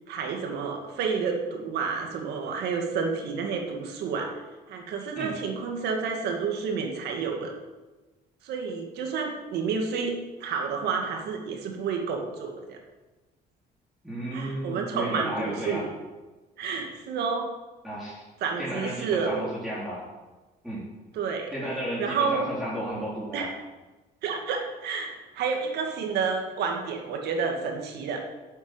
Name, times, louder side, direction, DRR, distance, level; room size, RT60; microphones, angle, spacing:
voice 1, 0.1-4.3 4.7-7.5 8.4-12.8 14.3-15.8 16.6-17.5 18.4-19.5 21.1-21.5 22.0-22.5 23.3-23.5 24.2-28.2, right 5 dB, 75° right, 2 dB, 2.1 m, -30 dB
voice 2, 14.0-15.9 17.8-18.2 18.6-20.1 20.6-20.9 21.5-23.5, right 1 dB, ahead, -9 dB, 3.7 m, -33 dB
9.4 x 8.2 x 9.2 m, 1.2 s
cardioid pair, 110°, 17 cm